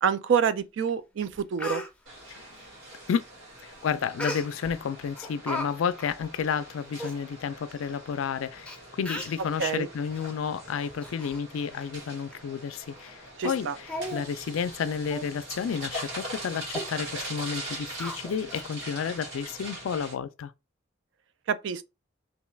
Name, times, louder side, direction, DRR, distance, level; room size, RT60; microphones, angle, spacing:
voice 1, 0.0-1.8 9.6-9.9 13.4-13.7 21.5-21.8, right 7 dB, 65° right, 0.3 m, -27 dB
Speech, 0.9-1.0 1.3-1.9 4.2-4.7 5.2-5.7 6.0-6.1 6.7-6.8 7.0-7.2 7.9-8.0 8.7-8.8 9.0-9.4 10.1-10.3 10.7-11.4 11.7-11.9 12.3-12.4 12.9-13.1 13.4-13.5 13.8-14.2 14.6-14.7 15.1-15.3 15.6-15.8 16.2-16.3 16.7-16.9 18.0-18.7 19.0-19.1, left 1 dB, 5° left, 0.5 m, -36 dB
sound 1, 2.1-20.1, right 1 dB, 85° right, 1.8 m, -42 dB
voice 2, 3.6-20.5, left 7 dB, 90° left, 0.3 m, -31 dB
2.8 x 2.3 x 3.1 m
head